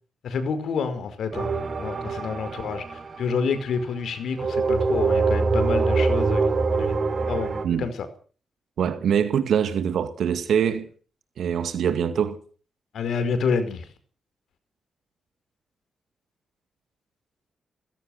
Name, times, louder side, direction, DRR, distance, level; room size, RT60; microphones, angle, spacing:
voice 1, 0.2-1.5 1.8-6.4 6.7-7.0 7.3-7.5 7.8-8.1 12.9-13.9, left 5 dB, 80° left, 5.1 m, -28 dB
sound 1, 1.3-3.8 4.4-7.7, right 4 dB, 45° right, 4.0 m, -24 dB
voice 2, 8.8-10.9 11.4-12.4, right 8 dB, 85° right, 2.0 m, -24 dB
20.5 x 16.0 x 8.0 m
wide cardioid pair, 120°, 0 cm